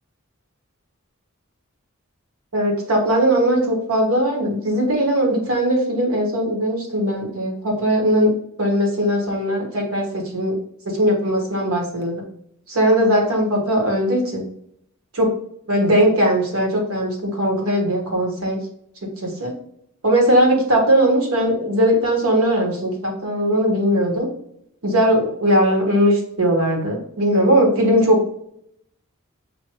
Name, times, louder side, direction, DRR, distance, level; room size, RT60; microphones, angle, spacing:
voice 1, 2.5-8.3 8.6-10.5 10.8-12.2 12.7-14.4 15.1-15.3 15.7-18.6 19.2-19.5 20.0-24.3 24.8-28.2, equal, 80° right, 0 dB, 1.4 m, -19 dB
6.2 x 2.5 x 3.0 m, 0.72 s
head